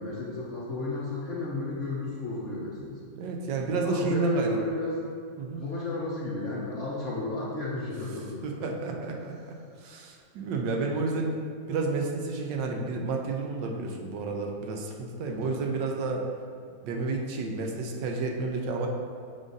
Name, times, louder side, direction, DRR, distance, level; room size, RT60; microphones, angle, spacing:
voice 1, 0.0-3.0 3.8-5.0 5.6-8.9 15.2-15.6, left 3 dB, 55° left, -6 dB, 0.8 m, -33 dB
voice 2, 3.2-4.6 5.4-5.6 8.4-11.3 11.7-16.2 16.8-18.9, right 3 dB, 75° right, 1 dB, 1.3 m, -31 dB
7.3 x 2.6 x 5.2 m, 2.2 s
omnidirectional pair, 2.1 m